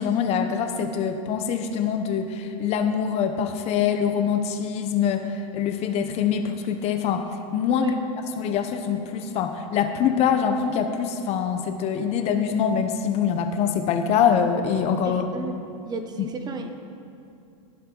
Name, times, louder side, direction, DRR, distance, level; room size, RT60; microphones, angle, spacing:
voice 1, 0.0-5.3 5.5-7.3 7.5-7.9 8.4-15.2 16.2-16.3, left 7 dB, 35° left, 7 dB, 0.9 m, -24 dB
voice 2, 15.0-15.5 15.8-16.7, right 4 dB, 25° right, 6 dB, 0.9 m, -33 dB
19.0 x 7.5 x 3.9 m, 2.5 s
supercardioid pair, 135°, 18 cm